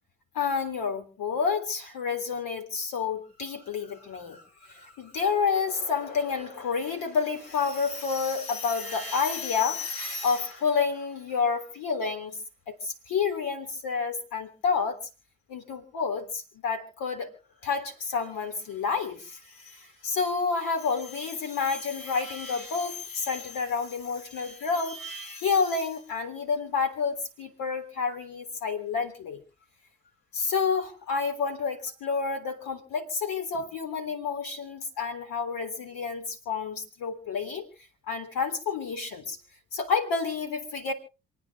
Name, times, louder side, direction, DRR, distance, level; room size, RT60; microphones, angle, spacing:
voice 1, 0.3-12.4 12.7-15.0 15.5-17.3 17.6-19.4 19.6-29.4 30.3-37.7 38.1-39.4 39.7-40.9, left 5 dB, 65° left, 3.5 m, -29 dB
27.5 x 9.3 x 3.7 m
hypercardioid pair, 45°, 36 cm